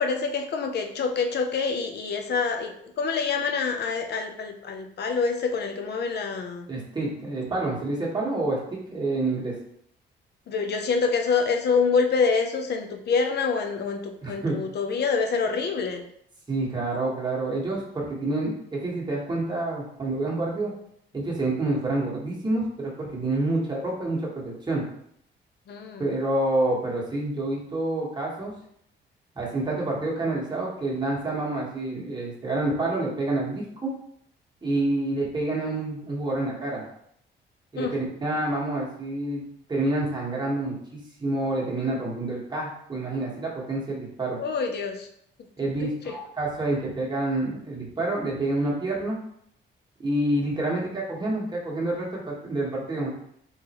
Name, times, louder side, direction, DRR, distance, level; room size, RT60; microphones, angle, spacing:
voice 1, 0.0-6.7 10.5-16.0 25.7-26.1 37.8-38.0 44.4-45.1 45.8-46.1, left 5 dB, 55° left, 5 dB, 0.6 m, -26 dB
voice 2, 6.7-9.5 14.2-14.6 16.5-20.7 21.1-24.8 26.0-28.5 29.3-33.9 34.6-36.9 37.7-39.4 39.7-44.4 45.6-49.2 50.0-53.1, right 2 dB, 20° right, -4 dB, 1.4 m, -28 dB
3.7 x 3.1 x 2.9 m, 0.71 s
cardioid pair, 90°, 20 cm